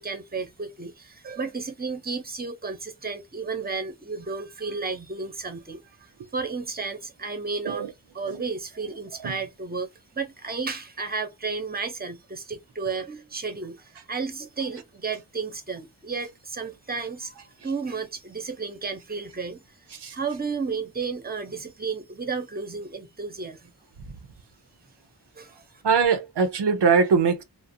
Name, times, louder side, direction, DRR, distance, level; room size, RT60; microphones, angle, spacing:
voice 1, 0.0-23.7 25.3-25.8, right 4 dB, 25° right, 0.6 m, -33 dB
voice 2, 25.8-27.4, right 5 dB, 85° right, 0.5 m, -22 dB
2.4 x 2.0 x 2.6 m
wide cardioid pair, 50°, 40 cm